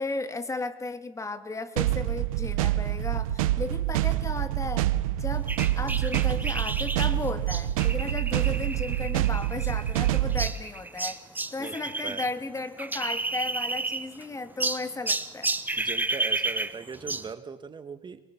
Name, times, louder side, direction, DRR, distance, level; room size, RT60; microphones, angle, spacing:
voice 1, 0.0-4.9 5.2-15.6, left 3 dB, 15° left, 10 dB, 2.2 m, -35 dB
sound 1, 1.8-10.5, right 14 dB, 90° right, 0.9 m, -26 dB
sound 2, 5.5-12.3 12.6-14.2 14.6-17.3, right 2 dB, 10° right, 1.5 m, -32 dB
voice 2, 15.8-18.2, right 5 dB, 25° right, 10 dB, 1.6 m, -39 dB
26.5 x 23.0 x 6.0 m, 0.99 s
supercardioid pair, 90°, 17 cm